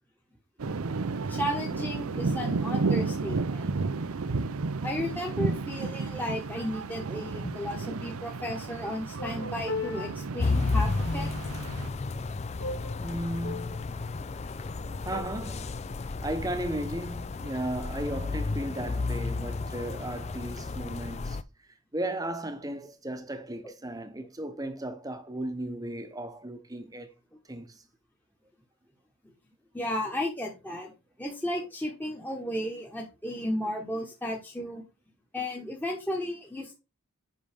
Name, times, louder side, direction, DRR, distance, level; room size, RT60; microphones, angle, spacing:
sound 1, 0.6-11.9, right 4 dB, 75° right, 0.6 m, -32 dB
voice 1, 1.3-3.7 4.8-11.3 29.7-30.9 31.2-34.8 35.3-36.7, left 1 dB, 10° left, 1.2 m, -34 dB
sound 2, 9.2-10.1 12.6-13.0 13.3-13.9 15.1-15.2, left 3 dB, 60° left, 1.9 m, -36 dB
sound 3, 10.4-21.4, left 3 dB, 30° left, 0.4 m, -32 dB
voice 2, 13.0-15.7 16.2-21.4 21.9-27.1 27.5-27.8, right 1 dB, 15° right, 0.9 m, -36 dB
8.4 x 5.5 x 3.5 m
head